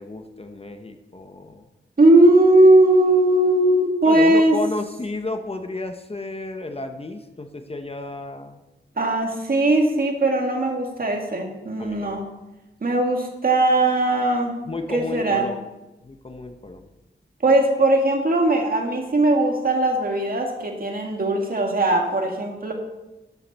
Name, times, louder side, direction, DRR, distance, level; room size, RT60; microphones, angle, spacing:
voice 1, 0.0-1.7 4.0-8.6 11.8-12.2 14.7-15.7 16.0-16.9, left 2 dB, 30° left, 6 dB, 0.8 m, -32 dB
voice 2, 2.0-4.6 9.0-12.3 12.8-14.6 14.9-15.5 17.4-22.7, right 1 dB, 50° right, 2 dB, 1.9 m, -19 dB
13.0 x 7.8 x 4.2 m, 1.0 s
wide cardioid pair, 105°, 20 cm